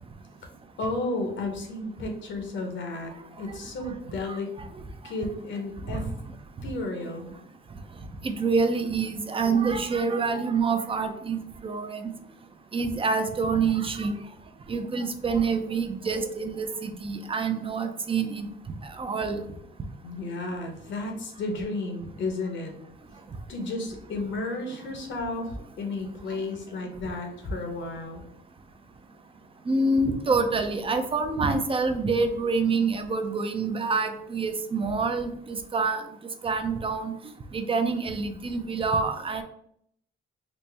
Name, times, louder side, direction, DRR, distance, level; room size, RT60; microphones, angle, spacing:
voice 1, 0.8-3.1 3.4-4.5 5.0-6.0 6.6-7.3 20.0-22.7 23.5-28.2, left 2 dB, 65° left, 3 dB, 1.0 m, -33 dB
voice 2, 4.2-4.7 5.9-6.1 8.2-12.1 12.7-14.2 14.7-18.5 18.8-19.5 29.7-36.0 36.4-37.1 37.5-39.4, right 4 dB, 25° right, 7 dB, 0.5 m, -27 dB
4.1 x 2.1 x 3.3 m, 0.69 s
cardioid pair, 90°, 20 cm